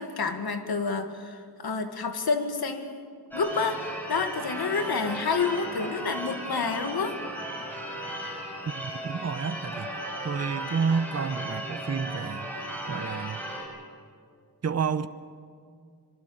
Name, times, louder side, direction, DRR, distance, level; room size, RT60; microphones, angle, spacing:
voice 1, 0.0-3.0 3.3-7.2, left 4 dB, 65° left, 7 dB, 2.1 m, -29 dB
Church bell / Car / Alarm, 3.3-13.6, right 1 dB, 5° left, 7.3 m, -36 dB
voice 2, 8.7-9.9 10.2-12.5 12.9-13.4 14.6-15.1, right 6 dB, 40° right, 12 dB, 0.9 m, -30 dB
25.0 x 23.5 x 7.9 m, 2.2 s
wide cardioid pair, 145°, 40 cm